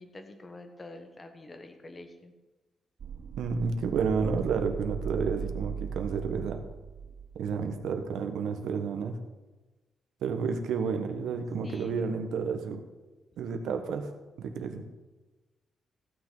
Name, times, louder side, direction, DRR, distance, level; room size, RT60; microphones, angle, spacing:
voice 1, 0.0-2.3 11.6-12.0, left 2 dB, 20° left, 6 dB, 1.1 m, -46 dB
sound 1, 3.0-7.8, right 7 dB, 45° right, 0.4 m, -38 dB
voice 2, 3.3-6.6 7.3-9.2 10.2-12.8 13.4-14.1 14.4-14.8, right 5 dB, 90° right, 6 dB, 1.3 m, -31 dB
16.0 x 9.0 x 3.9 m, 1.2 s
cardioid pair, 160°, 0 cm